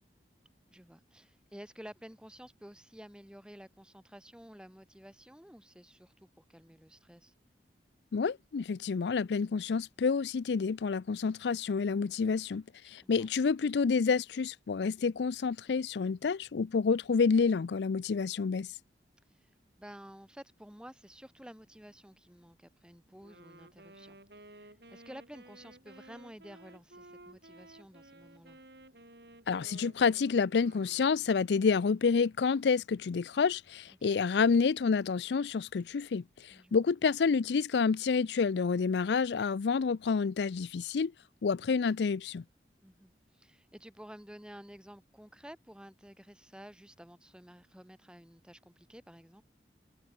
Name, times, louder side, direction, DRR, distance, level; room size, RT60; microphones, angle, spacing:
voice 1, 0.7-7.3 13.0-13.3 19.4-19.5 19.8-24.2 24.5-28.6 34.0-34.2 36.5-36.8 42.8-49.4, equal, 5° right, 1.7 m, -52 dB
voice 2, 8.1-18.7 29.5-41.1 41.4-42.4, left 5 dB, 80° left, 0.4 m, -29 dB
Wind instrument woodwind instrument, 23.2-31.5, right 1 dB, 70° right, 6.9 m, -55 dB
head